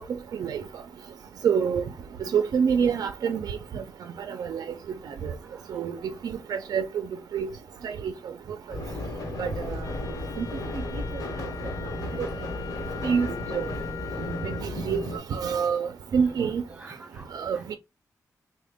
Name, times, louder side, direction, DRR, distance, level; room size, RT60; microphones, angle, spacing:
voice 1, 1.4-1.8 2.3-3.6 4.3-4.6 5.2-5.3 5.7-5.9 6.7-7.0 7.3-7.5 7.8-8.1 9.4-9.8 10.4-10.5 12.2-12.3 13.0-13.3 13.5-13.6 14.6-15.0 15.3-16.6 17.3-17.7, right 7 dB, 80° right, 0.4 m, -26 dB
sound 1, 8.7-15.2, left 1 dB, 75° left, 1.0 m, -34 dB
Wind instrument woodwind instrument, 9.8-14.7, left 8 dB, 60° left, 0.4 m, -41 dB
voice 2, 12.5-13.4 16.4-17.3, right 3 dB, 20° right, 0.5 m, -46 dB
3.5 x 2.1 x 3.4 m
wide cardioid pair, 165°, 6 cm